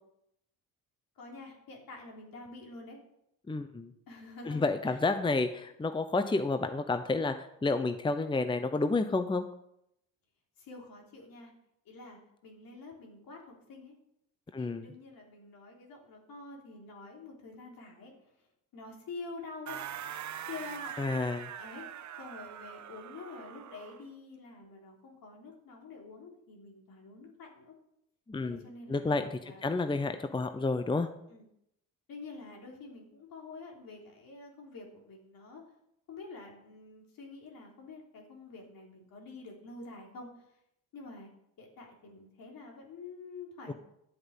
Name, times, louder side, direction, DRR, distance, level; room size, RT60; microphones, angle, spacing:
voice 1, 1.2-3.0 4.1-5.0 10.6-11.5 11.9-14.0 14.6-18.3 18.7-19.8 20.4-20.9 21.6-21.9 22.2-27.7 28.4-29.1 29.5-29.7 31.3-31.4 32.1-35.6 36.1-40.3 40.9-41.3 41.6-43.7, left 3 dB, 65° left, -1 dB, 3.5 m, -47 dB
voice 2, 3.5-3.9 4.5-9.4 14.5-14.9 21.0-21.5 28.3-28.6 28.9-31.1, left 3 dB, 15° left, 9 dB, 0.7 m, -30 dB
sound 1, 19.7-24.1, right 10 dB, 50° right, 0.7 m, -43 dB
10.5 x 7.9 x 5.5 m, 0.78 s
cardioid pair, 80°, 37 cm